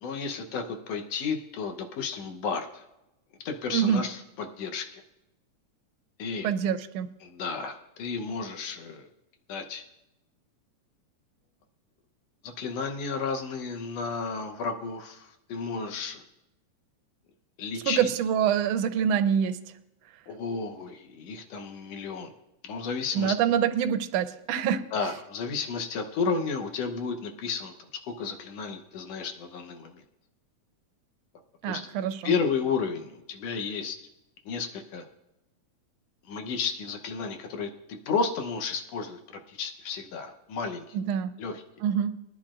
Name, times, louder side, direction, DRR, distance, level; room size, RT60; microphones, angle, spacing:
voice 1, 0.0-2.8 3.5-5.0 6.2-6.5 7.2-9.1 9.5-9.8 12.4-16.2 17.6-18.1 20.3-22.3 22.6-23.3 24.9-27.7 28.0-30.0 31.7-31.9 32.2-34.0 34.5-35.1 36.3-39.2 39.5-41.0 41.4-41.6, left 5 dB, 65° left, 5 dB, 1.9 m, -32 dB
voice 2, 3.7-4.0 6.4-7.1 17.9-19.6 23.1-24.9 31.6-32.3 40.9-41.3 41.8-42.2, right 8 dB, 80° right, 9 dB, 1.5 m, -25 dB
20.5 x 10.5 x 2.5 m, 0.93 s
omnidirectional pair, 3.4 m